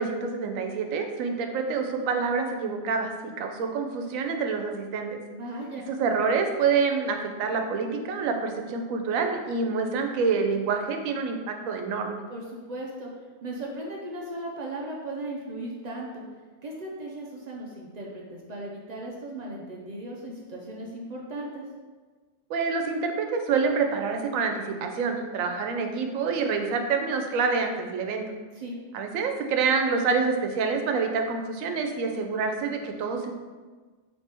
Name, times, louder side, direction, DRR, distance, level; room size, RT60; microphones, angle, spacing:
voice 1, 0.0-5.2 5.9-12.2 22.5-28.3 28.9-33.3, right 5 dB, 85° right, 4 dB, 1.0 m, -27 dB
voice 2, 5.3-5.9 12.3-13.1 13.4-16.2 16.6-21.6 28.5-28.8, right 1 dB, 60° right, -2 dB, 0.4 m, -37 dB
3.3 x 3.1 x 4.3 m, 1.4 s
omnidirectional pair, 1.4 m